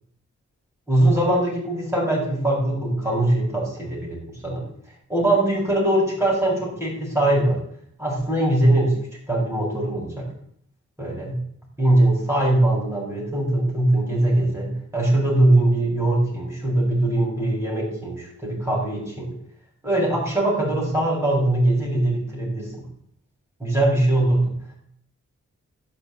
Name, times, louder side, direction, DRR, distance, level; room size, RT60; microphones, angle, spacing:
voice 1, 0.9-4.6 5.1-7.6 8.0-9.0 9.3-10.2 11.0-11.4 11.8-19.3 19.8-22.7 23.6-24.4, right 1 dB, 10° right, -4 dB, 8.0 m, -21 dB
12.5 x 8.2 x 8.9 m, 0.68 s
wide cardioid pair, 110°, 30 cm